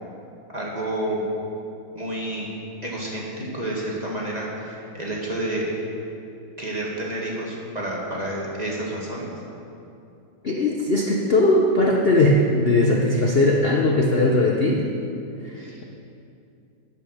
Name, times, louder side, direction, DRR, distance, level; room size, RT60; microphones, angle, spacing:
voice 1, 0.5-1.3 1.9-2.5 2.8-5.6 6.6-9.3 15.6-15.8, right 1 dB, 20° right, -4 dB, 1.9 m, -29 dB
voice 2, 10.4-14.9 15.4-15.8, left 2 dB, 60° left, -1 dB, 0.6 m, -19 dB
10.5 x 9.8 x 6.6 m, 2.7 s
omnidirectional pair, 2.3 m